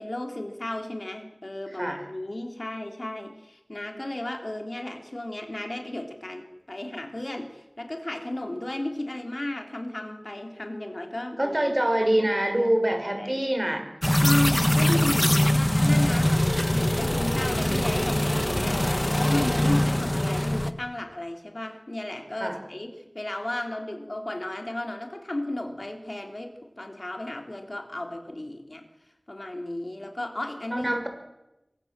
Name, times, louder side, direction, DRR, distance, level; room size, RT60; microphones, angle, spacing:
voice 1, 0.0-11.6 12.5-12.7 13.2-13.5 14.2-28.8 29.3-30.9, left 1 dB, 55° left, 4 dB, 3.5 m, -34 dB
voice 2, 11.4-13.9 22.4-22.6 30.7-31.1, right 1 dB, 35° right, 5 dB, 5.7 m, -25 dB
sound 1, 14.0-20.7, left 1 dB, 25° left, 1.4 m, -23 dB
25.0 x 24.0 x 7.6 m, 0.98 s
wide cardioid pair, 40°, 0 cm